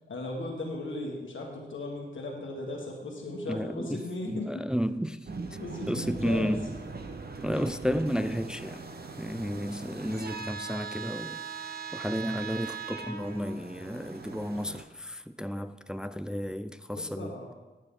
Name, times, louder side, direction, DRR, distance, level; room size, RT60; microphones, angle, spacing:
voice 1, 0.1-4.6 5.6-6.5 16.9-17.6, left 2 dB, 90° left, 1.6 m, -37 dB
voice 2, 3.5-4.0 4.3-5.3 5.9-6.6 7.4-8.9 9.2-17.3, equal, 5° right, 0.4 m, -32 dB
sound 1, 5.3-14.8, right 5 dB, 55° right, 0.9 m, -40 dB
12.5 x 6.4 x 3.8 m
cardioid pair, 60°, 20 cm